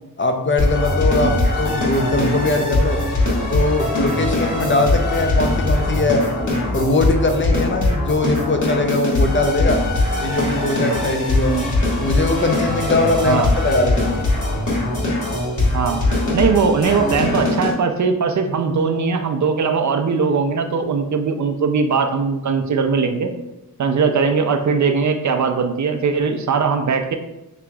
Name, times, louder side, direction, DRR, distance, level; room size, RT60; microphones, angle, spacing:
voice 1, 0.2-3.0 3.5-6.2 6.7-9.8 10.2-11.5 12.0-14.1, left 2 dB, 30° left, 5 dB, 0.5 m, -20 dB
sound 1, 0.6-17.7, left 2 dB, 50° left, 1.5 m, -21 dB
voice 2, 16.3-23.3 23.8-27.2, right 5 dB, 50° right, 6 dB, 0.5 m, -20 dB
6.1 x 2.9 x 2.3 m, 0.96 s
cardioid pair, 70°, 38 cm